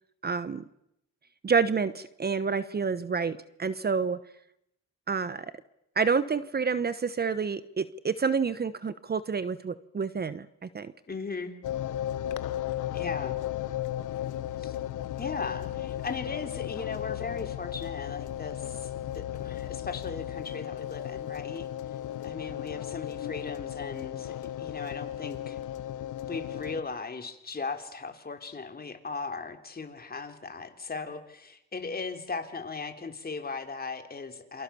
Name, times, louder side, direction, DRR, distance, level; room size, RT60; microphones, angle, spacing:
voice 1, 0.2-0.6 1.4-4.2 5.1-5.5 6.0-10.5 10.7-10.9, right 5 dB, 30° right, 14 dB, 1.1 m, -28 dB
voice 2, 11.1-11.5 12.9-13.4 14.6-14.8 15.2-21.7 22.2-25.6 26.2-34.6, left 4 dB, 30° left, 6 dB, 3.5 m, -38 dB
sound 1, 11.6-26.8, left 12 dB, 90° left, 1.3 m, -35 dB
28.0 x 24.5 x 7.1 m, 0.80 s
cardioid pair, 90°, 30 cm